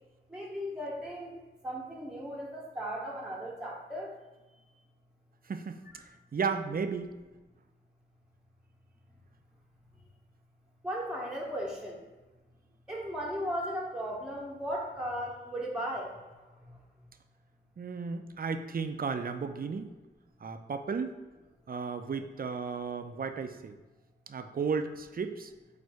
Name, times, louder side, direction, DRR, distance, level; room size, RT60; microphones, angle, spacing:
voice 1, 0.3-1.4 1.6-4.1 5.9-6.0 10.8-12.0 12.9-16.1, equal, 5° right, -3 dB, 0.8 m, -36 dB
voice 2, 5.4-7.1 17.8-19.9 20.4-21.2 21.7-23.8 24.3-25.5, right 5 dB, 45° right, 8 dB, 0.4 m, -34 dB
4.4 x 2.6 x 4.6 m, 1.2 s
cardioid pair, 50°, 21 cm